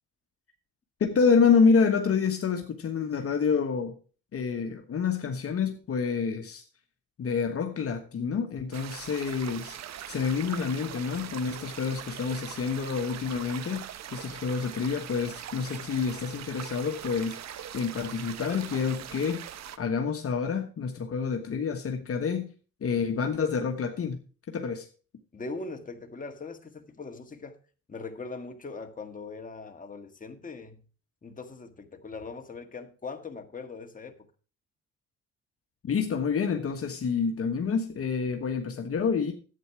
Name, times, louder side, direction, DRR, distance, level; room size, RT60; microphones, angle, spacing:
voice 1, 1.0-3.9 4.3-6.6 7.2-9.8 10.1-13.8 14.1-19.4 19.8-22.5 22.8-24.2 24.5-24.9 35.8-39.3, left 5 dB, 50° left, 1.3 m, -28 dB
sound 1, 8.7-19.8, right 10 dB, 60° right, 0.8 m, -41 dB
voice 2, 25.3-27.6 27.9-30.8 31.2-34.3, left 3 dB, 25° left, 1.6 m, -40 dB
11.0 x 8.6 x 4.8 m
cardioid pair, 90°, 30 cm